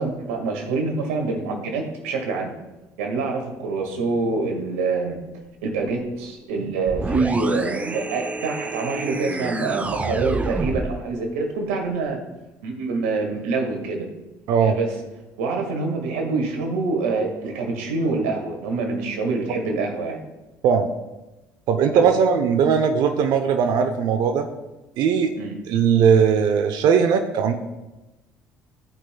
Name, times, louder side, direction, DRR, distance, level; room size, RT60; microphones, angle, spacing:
voice 1, 0.0-2.5 3.0-5.2 5.6-12.2 12.6-14.1 14.6-14.9 15.4-20.2 21.9-22.0 25.4-25.6, right 3 dB, 90° right, 2 dB, 1.8 m, -26 dB
sound 1, 6.9-11.0, right 3 dB, 20° right, 0.6 m, -28 dB
voice 2, 21.7-24.5 25.0-25.3 25.7-27.5, right 7 dB, 65° right, 6 dB, 0.7 m, -19 dB
15.0 x 5.4 x 2.3 m, 1.0 s
supercardioid pair, 75°, 8 cm